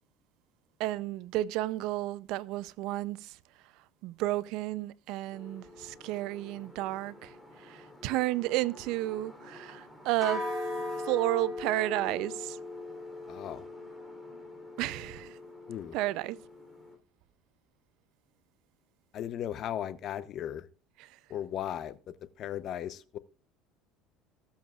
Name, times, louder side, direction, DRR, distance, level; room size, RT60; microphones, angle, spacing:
voice 1, 0.8-3.4 4.0-10.4 11.0-12.6 14.8-15.4 15.9-16.4 21.0-21.1, right 17 dB, 70° right, 0.6 m, -32 dB
sound 1, 5.3-17.0, left 2 dB, 5° left, 3.5 m, -41 dB
voice 2, 13.3-13.7 15.7-16.0 19.1-20.7 21.3-23.2, left 10 dB, 50° left, 0.8 m, -37 dB
19.5 x 7.2 x 2.4 m
supercardioid pair, 110°, 0 cm